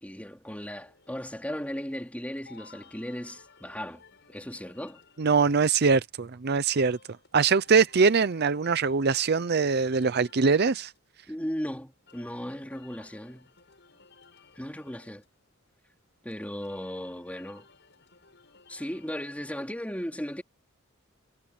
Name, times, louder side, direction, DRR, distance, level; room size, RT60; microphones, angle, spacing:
voice 1, 0.0-5.0 11.3-13.5 14.6-15.2 16.2-17.7 18.7-20.4, equal, 5° left, 3.8 m, -36 dB
sound 1, 0.6-19.2, left 5 dB, 60° left, 6.6 m, -58 dB
voice 2, 5.2-7.0 7.3-10.9, right 5 dB, 50° right, 0.6 m, -23 dB
head